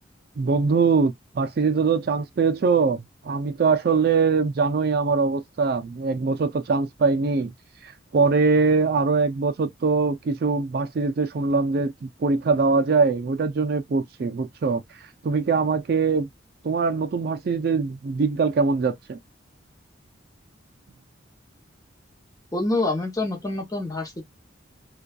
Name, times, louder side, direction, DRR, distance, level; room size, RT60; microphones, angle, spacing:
voice 1, 0.4-7.5 7.8-16.3 16.6-19.2, right 4 dB, 50° right, 0.3 m, -22 dB
voice 2, 22.5-24.2, left 2 dB, 20° left, 0.7 m, -26 dB
2.6 x 2.2 x 2.2 m
head